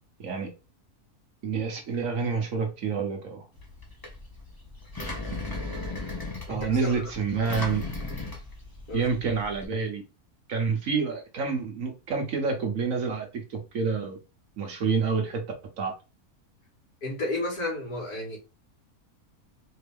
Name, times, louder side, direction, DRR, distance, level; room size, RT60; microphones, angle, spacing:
voice 1, 1.4-3.4 6.5-7.9 8.9-10.0 10.5-14.2 14.6-15.4 15.8-15.9, right 5 dB, 60° right, 1.4 m, -28 dB
Engine, 3.5-9.6, left 2 dB, 15° left, 0.9 m, -37 dB
voice 2, 6.5-7.0 7.4-7.5 8.9-9.1 17.0-18.4, left 2 dB, 80° left, 2.5 m, -32 dB
4.5 x 2.8 x 3.5 m
omnidirectional pair, 1.6 m